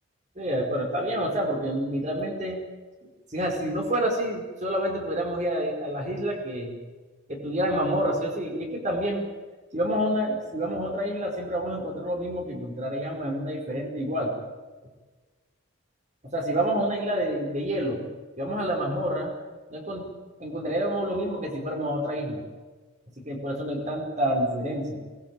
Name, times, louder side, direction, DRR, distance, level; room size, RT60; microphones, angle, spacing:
voice 1, 0.4-2.6 3.3-6.8 7.3-9.3 9.7-14.3 16.3-18.0 18.4-19.3 19.7-20.1 20.4-22.4 23.2-25.0, equal, 35° right, 2 dB, 4.9 m, -28 dB
23.0 x 19.5 x 9.0 m, 1.3 s
head